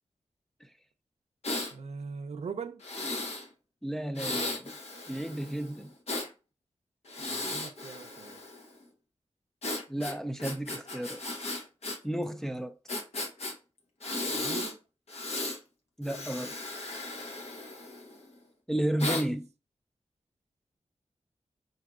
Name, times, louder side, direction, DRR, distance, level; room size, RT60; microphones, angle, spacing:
Breathing, 1.4-1.7 2.8-3.5 4.2-6.3 7.1-8.7 9.6-12.0 12.2-12.3 12.9-13.5 14.0-14.7 15.1-15.6 16.0-18.2 19.0-19.3, left 2 dB, 65° left, 0.8 m, -36 dB
voice 1, 1.7-2.8 7.2-8.4 14.3-14.8 18.9-19.2, right 5 dB, 65° right, 0.4 m, -41 dB
voice 2, 3.8-4.7 5.1-5.9 9.9-11.2 12.0-12.8 16.0-16.5 18.7-19.5, right 1 dB, 5° left, 0.4 m, -32 dB
4.7 x 2.7 x 2.4 m
cardioid pair, 50°, 12 cm